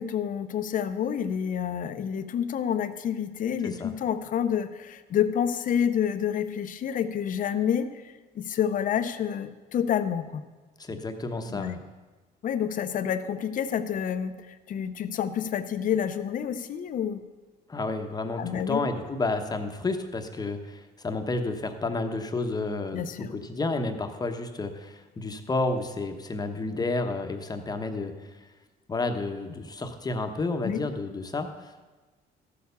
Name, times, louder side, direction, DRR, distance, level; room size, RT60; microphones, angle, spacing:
voice 1, 0.0-10.4 11.5-11.7 12.4-17.2 18.4-18.8 22.9-23.3 30.6-30.8, left 8 dB, 50° left, 11 dB, 0.8 m, -28 dB
voice 2, 10.8-11.8 17.7-23.0 23.3-28.1 28.9-31.8, left 3 dB, 25° left, 6 dB, 1.0 m, -31 dB
13.5 x 6.7 x 6.9 m, 1.3 s
cardioid pair, 110°, 17 cm